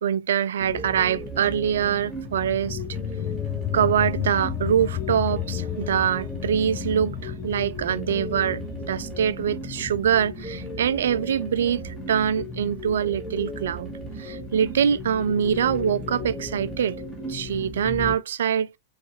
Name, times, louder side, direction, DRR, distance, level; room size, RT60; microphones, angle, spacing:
voice 1, 0.0-2.8 3.7-13.9 14.2-17.0 17.3-18.8, right 8 dB, 60° right, 0.3 m, -24 dB
sound 1, 0.6-18.1, left 1 dB, 5° left, 1.7 m, -35 dB
sound 2, 2.3-13.4, left 14 dB, 30° left, 0.3 m, -34 dB
5.2 x 3.2 x 3.1 m
figure-of-eight pair, 90°, 0 cm